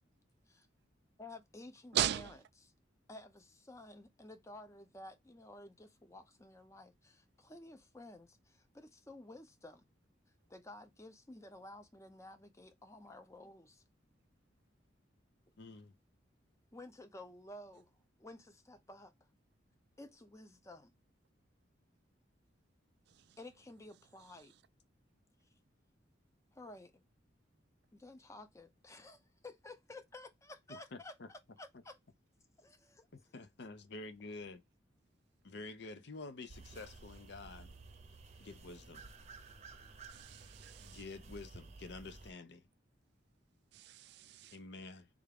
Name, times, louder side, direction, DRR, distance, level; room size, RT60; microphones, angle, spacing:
voice 1, 1.2-2.7 3.1-9.8 10.5-13.8 16.7-17.9 18.2-19.1 20.0-20.9 23.4-24.5 26.5-27.0 27.9-32.0 32.6-33.1, left 2 dB, 15° left, 0.5 m, -53 dB
voice 2, 1.9-2.3 40.1-41.0 43.7-44.5, right 11 dB, 60° right, 0.3 m, -37 dB
voice 3, 15.6-15.9 30.7-31.3 33.1-34.6 35.4-37.7 38.4-39.0 40.8-42.7 44.5-45.1, left 3 dB, 60° left, 0.6 m, -49 dB
sound 1, 36.5-42.3, right 3 dB, 35° right, 0.7 m, -54 dB
3.5 x 2.4 x 3.3 m
head